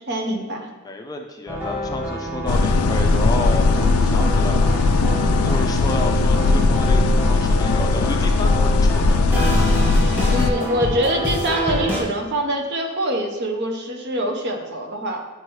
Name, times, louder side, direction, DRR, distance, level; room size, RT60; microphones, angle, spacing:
voice 1, 0.1-0.7 10.3-15.2, right 1 dB, 50° right, 2 dB, 0.9 m, -24 dB
voice 2, 0.8-4.7 5.4-9.2, left 2 dB, 15° left, 2 dB, 0.4 m, -31 dB
sound 1, 1.5-12.0, equal, 10° right, 1.6 m, -27 dB
sound 2, 2.5-10.5, left 3 dB, 80° left, 0.4 m, -18 dB
10.5 x 4.4 x 3.1 m, 1.2 s
head